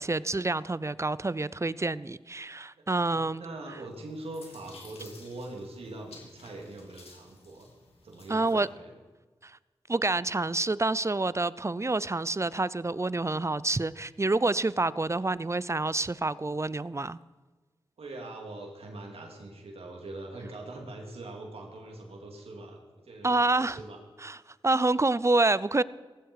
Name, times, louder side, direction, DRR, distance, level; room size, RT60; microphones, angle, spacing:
voice 1, 0.0-3.4 8.3-8.7 9.4-9.6 9.9-17.2 23.2-23.8 24.2-25.8, right 2 dB, 30° right, 19 dB, 0.6 m, -28 dB
voice 2, 2.8-7.7 8.0-8.9 18.0-24.0, right 2 dB, 80° right, 1 dB, 3.4 m, -43 dB
sound 1, 3.9-8.7, left 3 dB, 85° left, 3.4 m, -54 dB
17.0 x 15.5 x 4.9 m, 1.3 s
cardioid pair, 40°, 10 cm